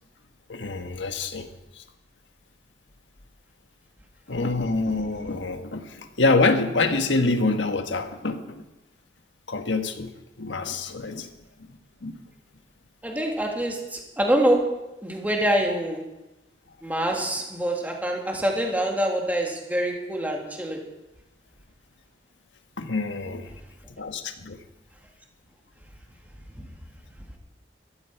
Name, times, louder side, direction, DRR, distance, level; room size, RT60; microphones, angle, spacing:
voice 1, 0.5-1.5 1.8-1.9 4.3-8.6 9.5-10.1 10.4-11.3 12.0-12.2 22.8-23.5 24.0-24.6, left 3 dB, 85° left, 6 dB, 1.3 m, -26 dB
voice 2, 13.0-16.1 16.8-20.8, right 1 dB, 10° right, 1 dB, 2.1 m, -25 dB
15.0 x 13.5 x 4.6 m, 0.97 s
head